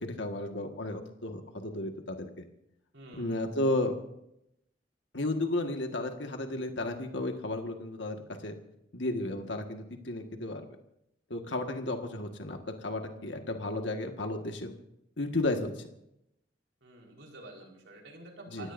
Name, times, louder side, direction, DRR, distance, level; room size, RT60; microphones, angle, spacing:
voice 1, 0.0-2.4 3.1-3.9 5.1-8.2 8.4-8.5 8.9-10.7 11.3-14.7 15.2-15.9 18.5-18.7, left 2 dB, 80° left, 4 dB, 1.7 m, -33 dB
voice 2, 2.9-3.4 16.8-18.7, right 2 dB, 80° right, 0 dB, 4.5 m, -48 dB
29.0 x 16.0 x 2.7 m, 0.81 s
head